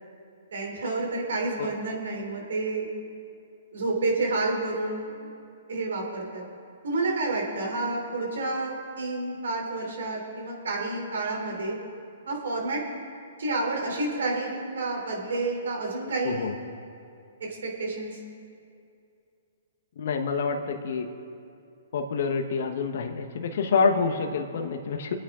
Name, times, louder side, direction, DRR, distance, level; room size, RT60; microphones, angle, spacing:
voice 1, 0.5-2.9 3.7-5.3 5.7-6.4 6.8-11.8 12.3-12.8 13.4-16.5 17.4-18.2, right 2 dB, 75° right, 0 dB, 3.3 m, -29 dB
voice 2, 20.0-21.1 21.9-25.2, left 5 dB, 60° left, 5 dB, 1.1 m, -27 dB
25.5 x 8.9 x 3.8 m, 2.5 s
hypercardioid pair, 130°, 0 cm